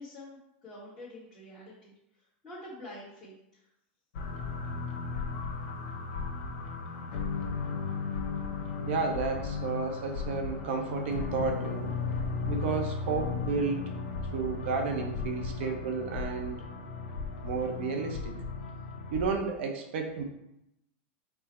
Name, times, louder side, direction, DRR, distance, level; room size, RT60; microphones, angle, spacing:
voice 1, 0.0-3.6, left 1 dB, 15° left, -11 dB, 1.2 m, -47 dB
sound 1, 4.1-19.3, left 4 dB, 75° left, 0.8 m, -35 dB
voice 2, 8.8-11.9 12.5-13.9 14.3-16.6 17.4-18.3 19.1-20.2, right 5 dB, 75° right, 4 dB, 0.7 m, -32 dB
4.5 x 2.1 x 4.2 m, 0.84 s
supercardioid pair, 145°, 6 cm